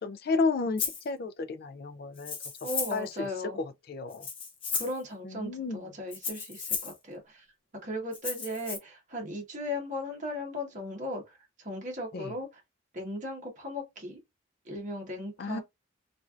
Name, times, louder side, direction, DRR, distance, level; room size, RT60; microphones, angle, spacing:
voice 1, 0.0-2.3 2.9-3.3 3.6-4.3 5.2-5.8 12.1-12.3 15.4-15.6, left 3 dB, 45° left, 0.3 m, -32 dB
Rattle (instrument), 0.8-1.0 2.2-3.1 4.1-5.0 6.1-7.0 8.1-8.8, left 5 dB, 25° left, 0.7 m, -34 dB
voice 2, 2.6-3.6 4.7-7.5 7.8-12.6 12.9-14.2 14.6-15.6, left 1 dB, 35° right, 1.1 m, -37 dB
3.2 x 2.5 x 2.4 m
head